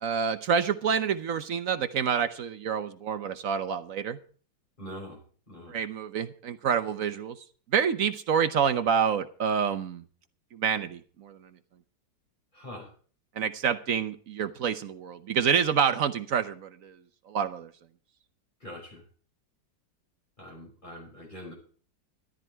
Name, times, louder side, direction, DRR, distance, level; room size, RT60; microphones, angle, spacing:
voice 1, 0.0-4.2 5.7-7.4 7.7-10.0 10.5-11.5 13.4-17.0 17.3-17.7, right 7 dB, 60° right, 10 dB, 1.0 m, -27 dB
voice 2, 4.8-5.2 5.5-5.8 12.5-12.9 18.6-19.0 20.4-21.5, equal, 25° left, -1 dB, 5.9 m, -43 dB
13.5 x 12.5 x 4.5 m, 0.42 s
omnidirectional pair, 2.0 m